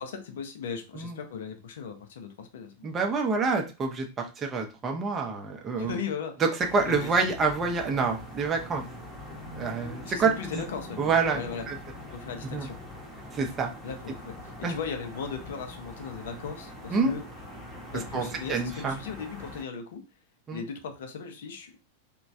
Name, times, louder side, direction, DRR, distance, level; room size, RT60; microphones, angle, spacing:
voice 1, 0.0-2.9 5.8-6.3 6.9-7.1 10.0-11.7 12.1-12.8 13.8-17.2 17.9-20.0 20.5-21.8, left 6 dB, 60° left, 6 dB, 0.5 m, -37 dB
voice 2, 2.8-6.0 6.4-8.8 9.6-10.6 11.0-11.4 11.7-11.8 12.5-12.7 13.3-13.7 14.6-14.8 16.9-17.1 17.9-18.9 20.5-20.6, right 4 dB, 25° right, 3 dB, 0.6 m, -27 dB
sound 1, 6.6-19.6, left 1 dB, 5° left, 0.8 m, -43 dB
3.0 x 2.2 x 2.6 m, 0.30 s
figure-of-eight pair, 90°, 0 cm